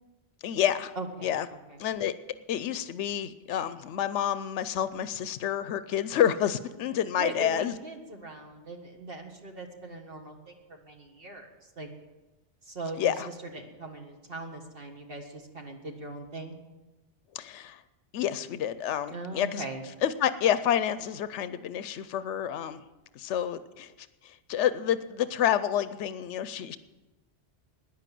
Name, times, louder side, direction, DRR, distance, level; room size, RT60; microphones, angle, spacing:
voice 1, 0.4-0.9 1.2-1.5 1.8-2.1 2.5-7.7 13.0-13.3 17.3-17.8 18.1-19.6 20.0-22.8 23.2-23.9 24.2-26.8, left 10 dB, 85° left, 13 dB, 0.9 m, -29 dB
voice 2, 1.0-1.3 1.7-1.8 7.2-11.9 12.6-16.6 19.1-19.8, right 2 dB, 55° right, 2 dB, 1.9 m, -40 dB
14.0 x 10.0 x 7.6 m, 1.1 s
omnidirectional pair, 1.2 m